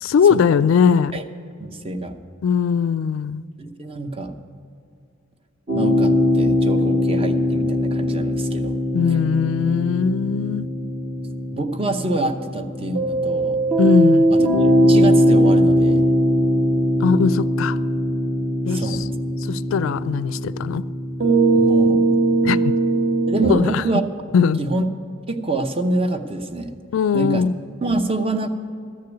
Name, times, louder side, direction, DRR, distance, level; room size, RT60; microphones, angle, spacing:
voice 1, 0.0-1.1 2.4-3.4 8.9-10.7 13.8-14.3 17.0-17.8 18.7-19.0 19.5-20.8 22.4-22.8 23.5-23.8 24.3-24.6 26.9-27.5, left 6 dB, 70° left, 15 dB, 0.3 m, -19 dB
voice 2, 1.6-2.1 3.6-4.3 5.7-8.8 11.5-13.6 14.3-14.5 14.8-16.0 18.7-19.1 21.5-22.0 23.3-24.0 24.6-24.9 25.3-26.7 27.1-27.4 27.8-28.5, right 2 dB, 30° right, 7 dB, 0.8 m, -26 dB
sound 1, 5.7-23.5, equal, 45° right, 1.8 m, -20 dB
13.5 x 6.6 x 9.3 m, 2.5 s
head